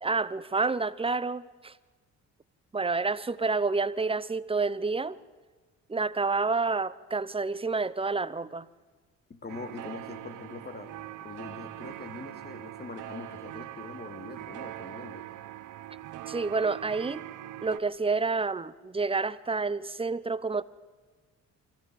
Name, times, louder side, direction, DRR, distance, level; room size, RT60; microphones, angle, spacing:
voice 1, 0.0-1.7 2.7-5.2 5.9-8.7 16.3-17.2 17.6-20.6, right 4 dB, 20° right, 16 dB, 0.8 m, -29 dB
voice 2, 9.3-10.9 11.2-15.3, left 3 dB, 30° left, 8 dB, 2.7 m, -43 dB
sound 1, 9.5-17.8, right 13 dB, 85° right, 1.1 m, -42 dB
24.5 x 15.5 x 7.7 m, 1.4 s
cardioid pair, 90°, 30 cm